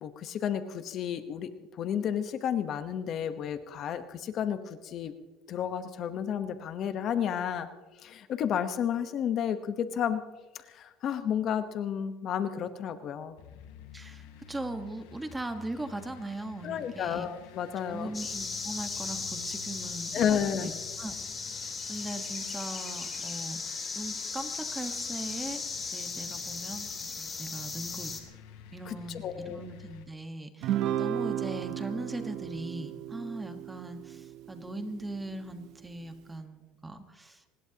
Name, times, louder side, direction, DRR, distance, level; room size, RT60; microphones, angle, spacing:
voice 1, 0.0-5.1 5.5-7.7 8.0-10.2 10.5-13.3 16.6-18.1 20.1-20.7 28.9-29.6, left 8 dB, 40° left, 10 dB, 1.0 m, -32 dB
sound 1, 13.4-30.0, left 8 dB, 85° left, 3.5 m, -51 dB
voice 2, 13.9-17.3 17.9-20.7 21.0-21.1 21.6-28.1 28.7-37.5, right 1 dB, 10° right, 7 dB, 1.4 m, -40 dB
sound 2, 18.1-28.2, left 4 dB, 20° left, 2.4 m, -37 dB
Guitar, 30.6-35.2, right 11 dB, 55° right, 0.9 m, -34 dB
24.5 x 20.5 x 2.9 m, 1.2 s
cardioid pair, 145°, 0 cm